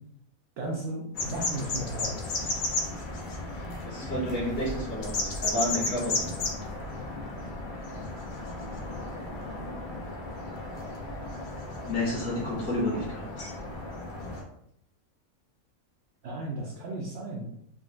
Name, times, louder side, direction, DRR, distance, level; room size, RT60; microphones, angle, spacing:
voice 1, 0.6-2.1 16.2-17.5, right 2 dB, 65° right, -2 dB, 0.8 m, -35 dB
sound 1, 1.1-14.4, left 2 dB, 85° left, 0.4 m, -34 dB
voice 2, 3.8-6.3 10.7-10.9 11.9-13.5, left 1 dB, 45° left, -7 dB, 1.2 m, -31 dB
3.7 x 2.0 x 2.4 m, 0.70 s
omnidirectional pair, 1.5 m